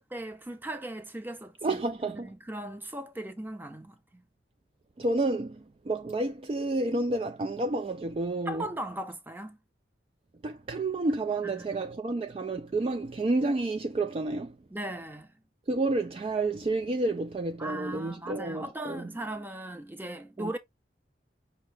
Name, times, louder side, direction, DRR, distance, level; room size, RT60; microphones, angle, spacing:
voice 1, 0.1-1.8 2.1-4.2 8.5-9.6 11.4-11.9 14.7-15.3 17.6-20.6, right 1 dB, 10° right, 0.7 m, -38 dB
voice 2, 1.6-2.3 5.0-8.7 10.4-14.6 15.7-19.1 20.4-20.5, right 2 dB, 35° right, 0.3 m, -30 dB
5.4 x 2.9 x 3.3 m
head